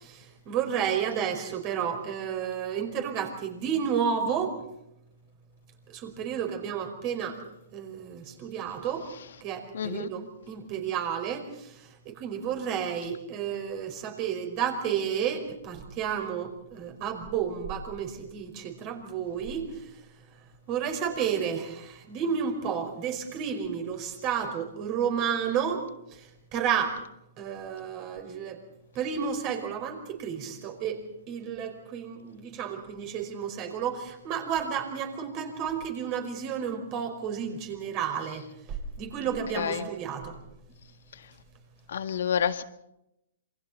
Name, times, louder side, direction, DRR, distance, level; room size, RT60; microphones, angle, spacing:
voice 1, 0.0-4.6 5.9-7.4 7.7-9.1 9.4-19.9 20.7-25.8 26.1-27.0 27.4-28.6 28.9-40.4, right 7 dB, 35° right, 4 dB, 5.1 m, -31 dB
voice 2, 9.7-10.1 39.5-39.9 41.1-41.3 41.9-42.6, left 8 dB, 65° left, 10 dB, 1.7 m, -29 dB
27.5 x 24.0 x 4.2 m, 0.83 s
figure-of-eight pair, 120°, 0 cm